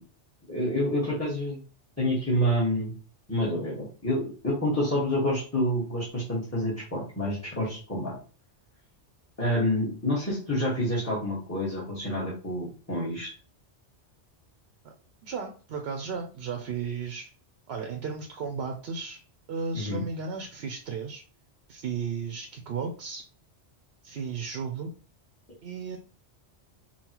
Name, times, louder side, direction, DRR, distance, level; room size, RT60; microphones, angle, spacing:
voice 1, 0.5-1.6 2.0-2.9 3.3-8.2 9.4-13.3 19.7-20.0, equal, 15° left, -6 dB, 1.4 m, -28 dB
voice 2, 15.2-17.3 17.7-19.2 19.5-21.2 21.7-23.2 24.0-24.9 25.6-26.0, right 5 dB, 65° right, 3 dB, 0.8 m, -34 dB
5.5 x 2.3 x 2.9 m, 0.37 s
omnidirectional pair, 1.2 m